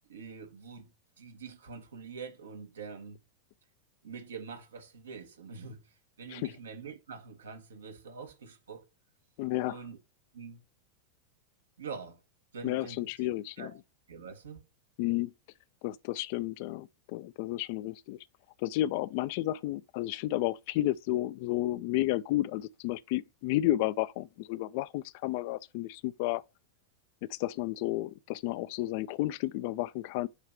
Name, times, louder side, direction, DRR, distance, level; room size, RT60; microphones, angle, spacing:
voice 1, 0.0-0.9 1.2-3.2 4.0-8.9 9.7-10.0 10.3-10.6 11.8-12.2 12.5-13.1 13.6-13.8 14.1-14.6, right 5 dB, 65° right, 1.3 m, -45 dB
voice 2, 9.4-9.8 12.6-13.7 15.0-15.3 15.8-18.2 18.6-26.4 27.3-30.3, left 16 dB, 50° left, 0.5 m, -32 dB
8.3 x 3.2 x 5.8 m
figure-of-eight pair, 90°, 0 cm